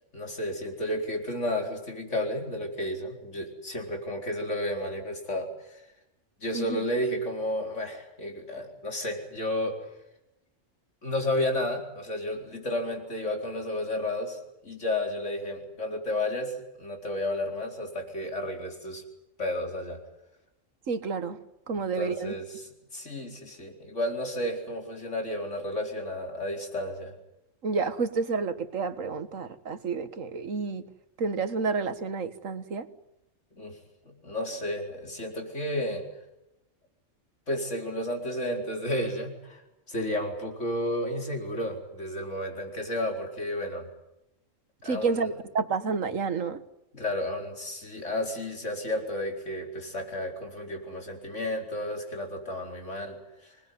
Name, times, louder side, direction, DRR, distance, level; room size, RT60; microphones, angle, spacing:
voice 1, 0.1-5.8 6.4-9.7 11.0-19.0 19.4-20.0 21.7-27.1 33.5-33.8 34.0-36.0 37.5-39.6 39.9-43.9 44.8-45.3 46.9-53.6, left 1 dB, 65° left, 2 dB, 4.9 m, -32 dB
voice 2, 20.9-21.4 21.7-22.3 27.6-30.9 31.2-32.9 44.8-46.6, right 4 dB, 85° right, 11 dB, 1.9 m, -30 dB
26.0 x 20.0 x 9.6 m, 0.88 s
omnidirectional pair, 1.3 m